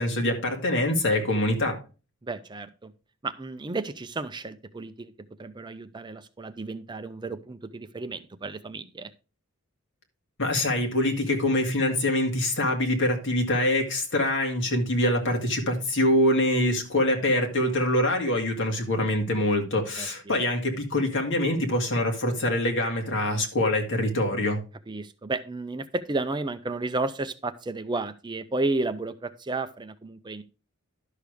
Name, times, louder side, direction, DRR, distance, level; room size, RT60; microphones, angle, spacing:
voice 1, 0.0-1.8 10.4-24.6, left 1 dB, 60° left, 2.2 m, -24 dB
voice 2, 2.2-2.9 3.2-5.1 5.4-9.1 20.0-20.4 24.9-30.4, right 2 dB, 20° right, 0.5 m, -32 dB
11.5 x 6.5 x 3.5 m
head